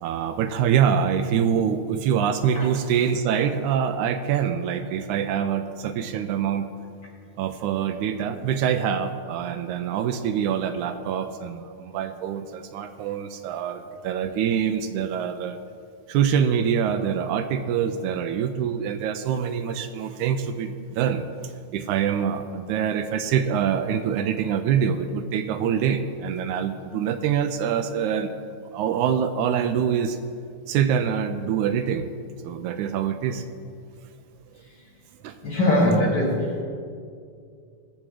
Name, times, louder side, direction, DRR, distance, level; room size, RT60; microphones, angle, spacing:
voice 1, 0.0-6.7 7.4-15.6 16.1-28.3 28.7-30.2 30.7-32.1 32.4-33.4 35.2-35.4, right 8 dB, 85° right, 8 dB, 2.0 m, -25 dB
voice 2, 35.4-36.6, left 1 dB, 45° left, -2 dB, 1.6 m, -22 dB
20.5 x 7.4 x 4.8 m, 2.4 s
omnidirectional pair, 3.4 m